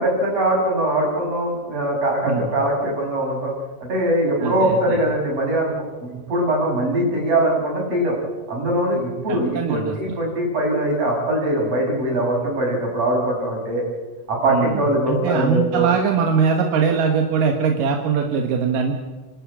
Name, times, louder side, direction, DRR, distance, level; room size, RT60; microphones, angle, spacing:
voice 1, 0.0-3.5 3.8-5.7 6.0-8.2 8.5-13.8 14.3-15.9, right 1 dB, 45° right, -1 dB, 7.6 m, -22 dB
voice 2, 2.3-2.6 4.4-5.0 9.3-10.2 14.5-18.9, right 6 dB, 85° right, 2 dB, 3.1 m, -22 dB
29.5 x 12.5 x 8.6 m, 1.3 s
omnidirectional pair, 3.8 m